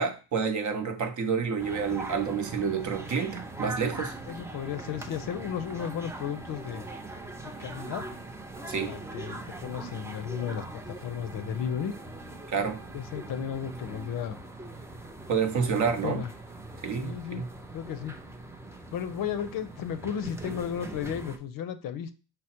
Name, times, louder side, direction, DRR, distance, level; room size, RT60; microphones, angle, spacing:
voice 1, 0.0-4.1 8.7-8.9 12.5-12.8 15.3-16.2 16.8-17.4, right 6 dB, 45° right, 0.8 m, -29 dB
sound 1, 1.6-21.4, right 2 dB, 5° right, 0.4 m, -41 dB
voice 2, 4.3-6.8 7.4-8.1 8.7-11.9 12.9-14.4 15.6-16.3 17.0-17.4 17.7-18.1 18.9-22.1, left 8 dB, 55° left, 0.6 m, -34 dB
5.0 x 2.0 x 4.2 m
cardioid pair, 95°, 41 cm